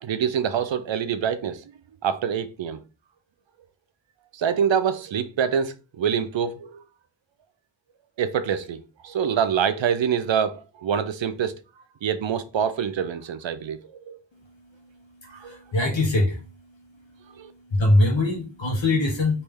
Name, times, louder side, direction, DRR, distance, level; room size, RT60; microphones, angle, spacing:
voice 1, 0.0-1.6 2.0-2.8 4.3-6.8 8.2-11.6 12.0-13.8 14.1-14.2 15.3-15.6 17.4-17.5, right 7 dB, 70° right, 0.5 m, -25 dB
voice 2, 15.3-16.5 17.7-19.4, left 2 dB, 70° left, 0.9 m, -22 dB
3.1 x 2.6 x 3.4 m
wide cardioid pair, 55°, 46 cm